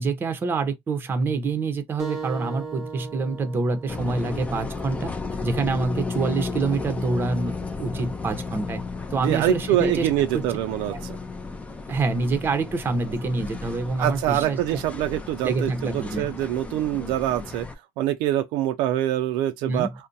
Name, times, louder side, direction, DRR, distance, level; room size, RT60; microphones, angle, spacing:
voice 1, 0.0-5.1 5.4-8.8 9.1-10.1 10.3-10.4 10.9-11.0 11.9-15.0 15.4-16.3 19.6-19.9, right 3 dB, 25° right, 0.7 m, -26 dB
sound 1, 2.0-7.1, right 4 dB, 5° right, 1.0 m, -39 dB
sound 2, 3.9-17.7, left 4 dB, 15° left, 0.5 m, -34 dB
voice 2, 9.1-11.2 14.0-17.7 18.0-19.9, right 13 dB, 70° right, 0.4 m, -25 dB
2.6 x 2.1 x 3.7 m
supercardioid pair, 110°, 9 cm